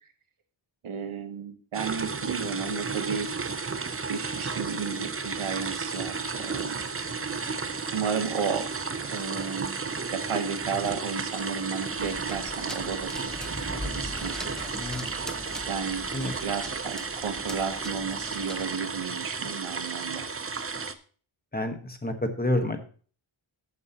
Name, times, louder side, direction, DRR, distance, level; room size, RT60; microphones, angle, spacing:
voice 1, 0.8-3.3 4.1-6.8 7.4-8.7 9.1-9.8 10.1-14.5 15.6-16.1 16.4-20.3, right 6 dB, 85° right, 7 dB, 1.4 m, -33 dB
sound 1, 1.7-20.9, right 4 dB, 30° right, 0.8 m, -33 dB
sound 2, 11.9-18.7, equal, ahead, 1.1 m, -41 dB
voice 2, 14.7-15.1 16.1-16.3 21.5-22.8, left 1 dB, 20° left, 6 dB, 1.4 m, -29 dB
14.5 x 7.4 x 3.0 m, 0.41 s
wide cardioid pair, 95°, 48 cm